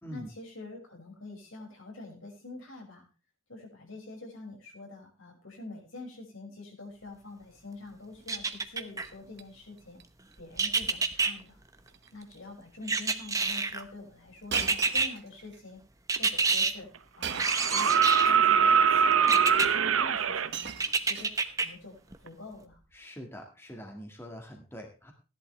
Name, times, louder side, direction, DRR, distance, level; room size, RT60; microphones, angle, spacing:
voice 1, 0.1-3.1 3.5-10.0 10.4-11.6 12.1-15.8 16.2-16.9 17.2-20.8 21.0-22.8, left 2 dB, 75° left, 1 dB, 5.8 m, -46 dB
Shatter, 8.1-8.6 9.0-9.4 9.8-10.0 10.3-10.4 11.3-11.5 11.8-12.1 12.8-12.9 14.5-15.6 17.2-17.7 18.7-18.8 19.9-20.0 20.2-21.7 22.7-23.0, right 7 dB, 55° right, 1.1 m, -40 dB
sound 1, 8.3-9.1 10.6-11.3 12.9-13.8 14.5-15.1 16.1-16.7 17.4-18.4 19.3-19.7 20.8-21.7 22.1-22.2, right 4 dB, 15° right, 0.9 m, -27 dB
sound 2, 16.2-16.3 17.3-20.5 22.3-22.4, right 7 dB, 85° right, 0.9 m, -23 dB
voice 2, 22.9-25.1, equal, 10° left, 2 dB, 2.0 m, -44 dB
16.5 x 11.0 x 3.3 m, 0.32 s
head